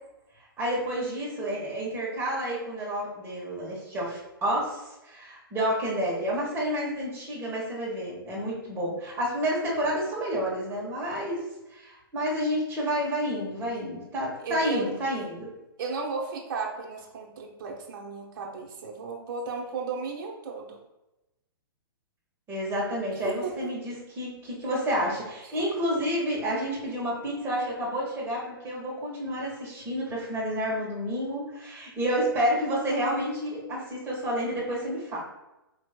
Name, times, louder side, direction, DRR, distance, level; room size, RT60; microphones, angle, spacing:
voice 1, 0.6-11.4 11.7-15.5 22.5-35.2, equal, 20° right, -5 dB, 1.3 m, -30 dB
voice 2, 14.4-14.9 15.8-20.8 23.2-23.5 25.4-25.7, right 4 dB, 55° right, -1 dB, 0.9 m, -35 dB
4.7 x 3.0 x 2.2 m, 0.97 s
figure-of-eight pair, 120°, 13 cm